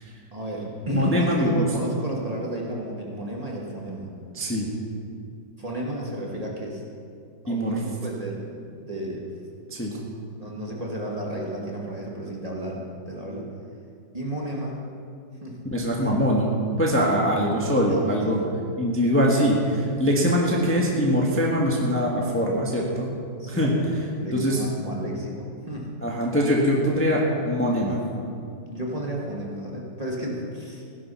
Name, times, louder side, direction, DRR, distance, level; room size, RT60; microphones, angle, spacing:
voice 1, 0.3-4.1 5.6-6.8 7.4-9.3 10.4-13.5 14.1-14.8 15.4-15.6 16.0-16.2 17.2-18.5 23.4-23.8 24.2-25.9 28.7-30.8, right 1 dB, 20° right, -3 dB, 2.0 m, -33 dB
voice 2, 0.9-1.7 4.3-4.7 7.5-7.8 9.7-10.0 15.7-16.5 16.8-18.4 18.8-23.1 23.5-23.7 24.3-24.6 26.0-28.0, equal, 5° left, -3 dB, 1.5 m, -22 dB
16.5 x 11.0 x 5.7 m, 2.4 s
omnidirectional pair, 1.9 m